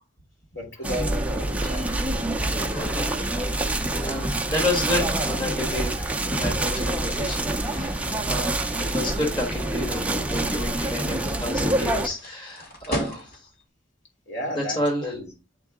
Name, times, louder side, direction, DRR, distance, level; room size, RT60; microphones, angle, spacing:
voice 1, 0.5-2.2 14.3-15.3, equal, 70° left, 3.1 m, -34 dB
sound 1, 0.8-12.1, right 1 dB, 5° right, 0.5 m, -26 dB
voice 2, 2.7-8.6 8.9-13.5 14.5-15.1, left 1 dB, 25° left, 1.4 m, -31 dB
sound 2, 10.7-13.7, equal, 50° left, 2.6 m, -40 dB
8.2 x 3.8 x 3.6 m
head